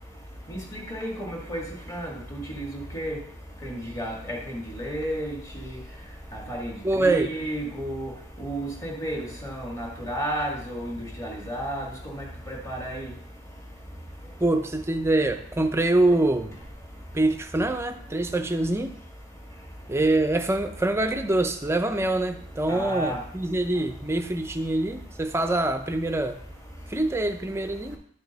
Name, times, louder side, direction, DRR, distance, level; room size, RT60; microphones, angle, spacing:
voice 1, 0.5-1.6 1.9-2.7 2.9-3.2 3.6-5.8 6.5-8.1 8.4-11.9 12.1-13.1 22.7-23.2, right 1 dB, 15° left, -1 dB, 1.7 m, -32 dB
voice 2, 6.8-7.3 14.4-16.5 17.1-18.9 19.9-26.4 26.9-28.0, right 2 dB, 10° right, 7 dB, 0.5 m, -24 dB
11.0 x 5.1 x 4.0 m, 0.63 s
head